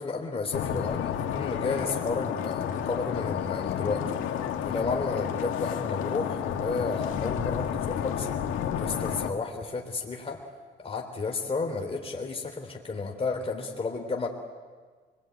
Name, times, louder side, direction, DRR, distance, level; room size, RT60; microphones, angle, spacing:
voice 1, 0.0-4.2 4.6-8.3 8.8-10.4 10.8-14.3, left 4 dB, 30° left, 2 dB, 3.3 m, -32 dB
sound 1, 0.5-9.3, left 9 dB, 85° left, 2.1 m, -31 dB
26.5 x 22.5 x 9.2 m, 1.5 s
cardioid pair, 90°, 20 cm